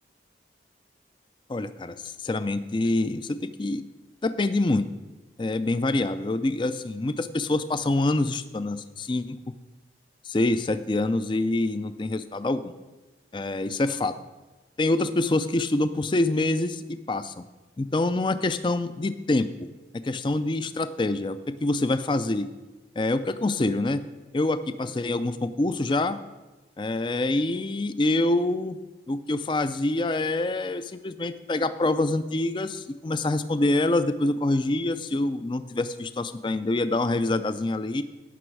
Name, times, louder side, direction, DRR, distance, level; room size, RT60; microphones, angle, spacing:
voice 1, 1.5-3.8 4.2-4.9 5.4-9.4 10.2-12.7 13.3-14.1 14.8-17.4 17.8-19.5 20.0-22.5 23.0-24.1 24.3-26.2 26.8-28.8 29.1-38.0, left 2 dB, 25° left, 12 dB, 0.4 m, -26 dB
16.0 x 6.1 x 4.7 m, 1.1 s
head